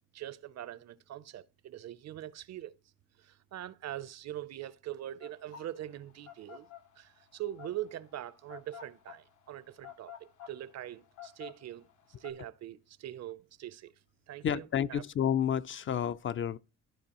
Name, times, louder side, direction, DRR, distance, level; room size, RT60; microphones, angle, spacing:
voice 1, 0.0-2.7 3.2-6.7 7.0-11.9 12.2-13.9 14.3-15.0, right 13 dB, 60° right, 0.6 m, -43 dB
sound 1, 5.2-12.3, left 10 dB, 75° left, 1.1 m, -50 dB
voice 2, 14.4-16.6, left 9 dB, 40° left, 0.4 m, -30 dB
13.5 x 4.6 x 2.9 m
cardioid pair, 90°, 30 cm